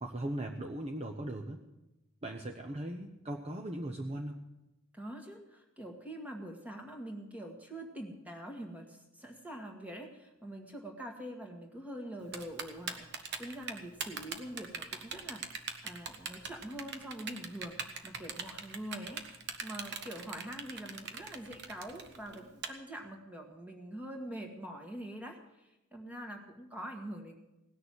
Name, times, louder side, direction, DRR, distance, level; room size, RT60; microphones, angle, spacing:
voice 1, 0.0-1.6 2.2-4.4, right 1 dB, 30° right, 2 dB, 0.9 m, -38 dB
voice 2, 4.9-19.2 19.6-27.4, right 1 dB, 5° right, 2 dB, 2.0 m, -44 dB
Typing, 12.3-22.7, right 5 dB, 55° right, 1.3 m, -40 dB
18.0 x 6.8 x 9.6 m, 0.96 s
head